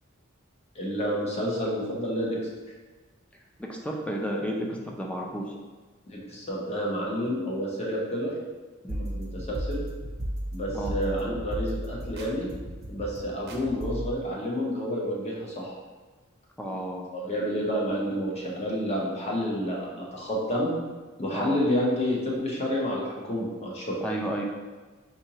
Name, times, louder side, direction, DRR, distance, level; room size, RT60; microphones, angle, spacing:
voice 1, 0.7-2.4 6.1-8.3 9.1-9.8 10.5-12.5 12.9-15.8 17.1-20.7 21.2-24.0, equal, 30° left, -4 dB, 0.9 m, -29 dB
voice 2, 3.6-5.5 8.8-9.1 10.7-10.9 16.6-17.1 21.3-21.6 24.0-24.4, equal, 5° left, -1 dB, 0.5 m, -32 dB
sound 1, 8.9-14.1, equal, 50° right, 0.6 m, -34 dB
4.4 x 3.6 x 3.0 m, 1.3 s
head